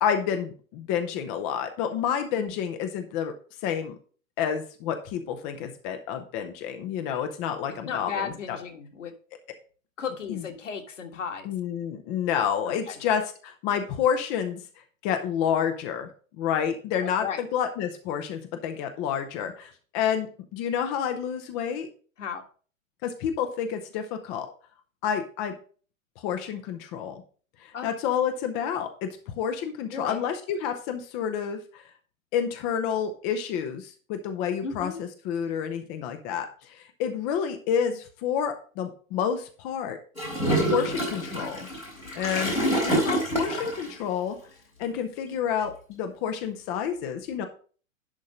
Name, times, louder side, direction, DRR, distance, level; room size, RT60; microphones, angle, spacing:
voice 1, 0.0-3.3 3.6-4.0 4.4-8.6 10.3-10.4 11.5-14.6 15.0-16.1 16.4-21.9 23.0-24.5 25.0-25.6 26.2-27.2 27.6-31.8 32.3-40.0 40.7-41.7 42.2-44.4 44.8-47.5, left 8 dB, 15° left, 7 dB, 0.4 m, -29 dB
voice 2, 7.8-9.1 10.0-11.5 12.7-13.0 17.2-17.4 22.2-22.4 27.7-27.9 29.9-30.3 34.6-35.0, left 6 dB, 65° left, 5 dB, 1.7 m, -35 dB
Gurgling / Toilet flush, 40.2-43.9, right 1 dB, 90° left, 3.2 m, -27 dB
11.0 x 3.7 x 5.4 m, 0.40 s
figure-of-eight pair, 110°, 40 cm